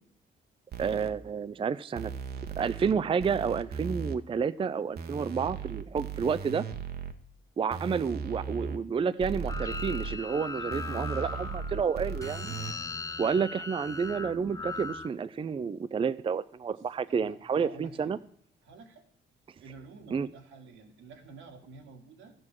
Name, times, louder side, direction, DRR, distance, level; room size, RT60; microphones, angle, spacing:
sound 1, 0.7-1.1 2.0-2.9 3.2-4.2 5.0-7.1 7.7-8.8 9.2-10.2 10.7-12.7, right 5 dB, 55° right, 1.1 m, -37 dB
voice 1, 0.8-2.1 2.6-6.6 7.6-12.5 13.2-18.2 20.1-20.3, right 6 dB, 25° right, 14 dB, 0.4 m, -30 dB
sound 2, 9.5-15.1, left 3 dB, 15° left, 0.6 m, -39 dB
voice 2, 16.7-18.1 18.6-19.1 19.6-22.3, right 4 dB, 85° right, 4 dB, 2.0 m, -50 dB
13.5 x 7.6 x 6.1 m, 0.63 s
cardioid pair, 90°, 20 cm